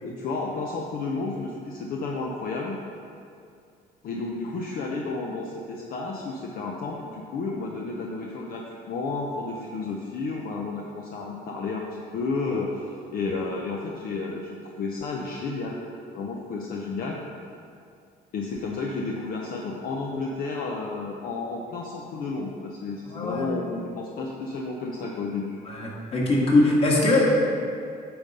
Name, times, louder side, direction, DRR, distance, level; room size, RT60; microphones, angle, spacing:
voice 1, 0.0-2.8 4.0-17.2 18.3-25.6, left 3 dB, 60° left, -1 dB, 0.7 m, -32 dB
voice 2, 23.1-23.5 25.7-27.5, left 2 dB, 35° left, -3 dB, 1.7 m, -21 dB
8.8 x 3.8 x 5.4 m, 2.4 s
cardioid pair, 110°, 17 cm